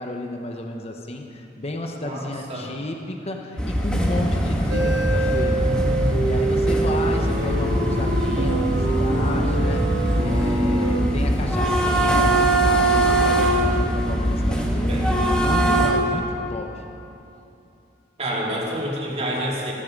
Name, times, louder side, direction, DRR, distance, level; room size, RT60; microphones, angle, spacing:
voice 1, 0.0-5.6 6.3-9.8 10.2-16.8, left 2 dB, 35° left, 2 dB, 1.0 m, -32 dB
voice 2, 2.0-2.7 11.6-12.1 14.9-15.4 18.2-19.7, equal, 35° right, -4 dB, 2.9 m, -29 dB
sound 1, 3.6-15.9, right 1 dB, 5° left, 1.7 m, -22 dB
sound 2, 3.9-10.6, equal, 70° left, 1.9 m, -29 dB
sound 3, 4.7-11.0, right 2 dB, 85° right, 2.2 m, -25 dB
15.0 x 14.5 x 5.3 m, 2.8 s
head